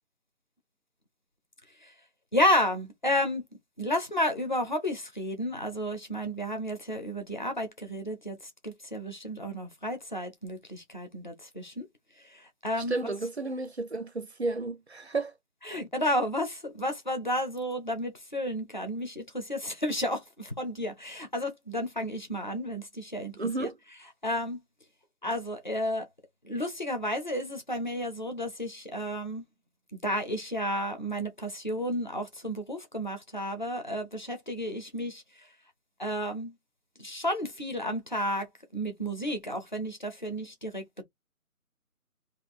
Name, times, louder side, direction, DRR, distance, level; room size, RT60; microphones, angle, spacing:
voice 1, 2.3-3.4 3.8-11.9 12.2-13.1 15.6-23.3 23.6-23.7 24.2-24.6 25.2-26.1 26.4-29.4 29.9-35.5 36.0-36.5 37.0-38.5 38.7-41.0, equal, 35° left, 0.6 m, -32 dB
voice 2, 12.8-15.3 23.4-23.8, right 3 dB, 50° right, 0.4 m, -32 dB
2.8 x 2.6 x 4.1 m
hypercardioid pair, 175°, 44 cm